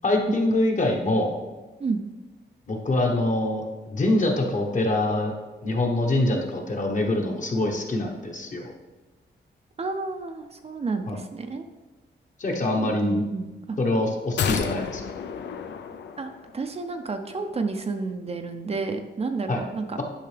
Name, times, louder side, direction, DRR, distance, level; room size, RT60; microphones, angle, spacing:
voice 1, 0.0-1.3 2.7-5.3 5.6-8.7 11.1-11.2 12.4-13.2 13.8-15.0 19.5-19.6, left 2 dB, 45° left, 1 dB, 1.1 m, -24 dB
voice 2, 9.8-11.6 12.7-13.8 16.2-20.0, right 4 dB, 35° right, 7 dB, 0.5 m, -31 dB
sound 1, 14.4-16.7 17.0-17.1, left 7 dB, 75° left, 0.5 m, -31 dB
10.0 x 5.6 x 3.4 m, 1.2 s
wide cardioid pair, 145°, 18 cm